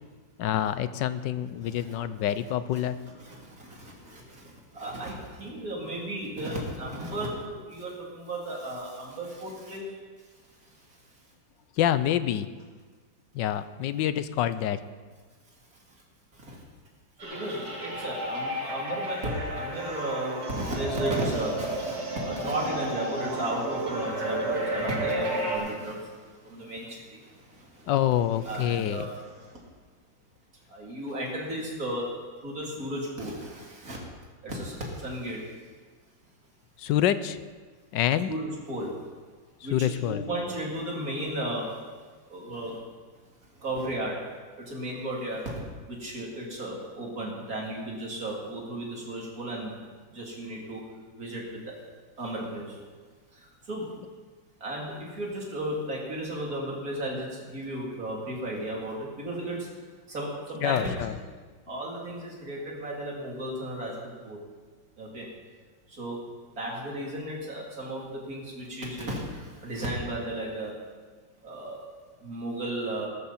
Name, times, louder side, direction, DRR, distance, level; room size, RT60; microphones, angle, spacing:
voice 1, 0.4-3.1 11.8-12.5 13.3-14.8 27.9-29.1 36.8-37.4 37.9-38.3 39.7-40.2 60.6-61.1, left 11 dB, 75° left, 13 dB, 1.3 m, -26 dB
voice 2, 1.6-2.0 2.7-2.8 3.2-10.0 16.3-16.6 17.2-27.9 28.4-29.6 30.7-32.1 32.4-34.0 34.4-35.5 38.3-39.0 39.6-41.8 42.3-42.8 43.5-44.2 44.6-45.6 45.9-49.8 50.1-50.8 51.2-51.6 52.2-52.8 53.3-54.0 54.6-59.7 60.1-60.9 61.7-64.4 65.0-65.3 65.9-66.2 66.5-70.7 71.4-71.8 72.2-73.1, right 1 dB, 45° right, -3 dB, 3.6 m, -34 dB
sound 1, 17.2-25.6, right 1 dB, 65° right, 3.9 m, -32 dB
18.5 x 13.5 x 4.3 m, 1.4 s
omnidirectional pair, 2.1 m